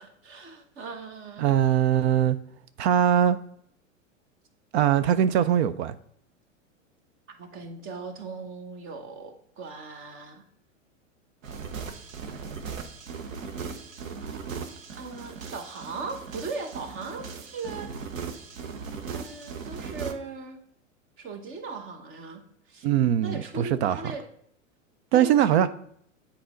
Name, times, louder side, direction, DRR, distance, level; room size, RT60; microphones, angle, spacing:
voice 1, 0.0-1.5 7.3-10.4 15.0-17.9 19.1-20.6 21.2-22.4 22.7-22.9 23.2-24.2 25.1-25.7, right 4 dB, 30° right, 1.2 m, -38 dB
voice 2, 1.4-2.4 2.8-3.4 4.7-5.9 22.8-24.0 25.1-25.7, right 10 dB, 55° right, 0.5 m, -21 dB
sound 1, 11.4-20.1, right 5 dB, 80° right, 1.0 m, -38 dB
7.8 x 4.2 x 3.7 m
hypercardioid pair, 105°, 39 cm